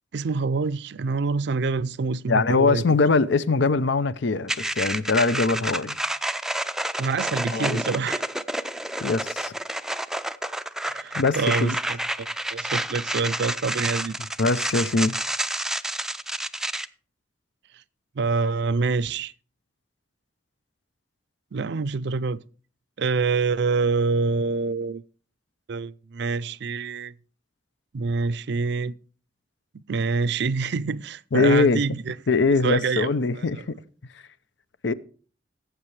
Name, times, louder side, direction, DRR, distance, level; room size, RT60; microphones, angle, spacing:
voice 1, 0.1-2.8 7.0-8.2 10.8-14.2 18.2-19.3 21.5-22.4 23.0-25.0 25.7-27.1 27.9-28.9 29.9-32.1 32.6-33.4, right 4 dB, 65° right, 0.5 m, -26 dB
voice 2, 2.3-6.0 7.5-7.8 9.0-9.5 11.1-11.8 14.4-15.2 31.3-31.8 32.3-33.8 34.8-34.9, left 3 dB, 75° left, 0.6 m, -22 dB
sound 1, 4.5-16.9, right 1 dB, 5° right, 0.4 m, -29 dB
18.0 x 8.0 x 3.2 m
head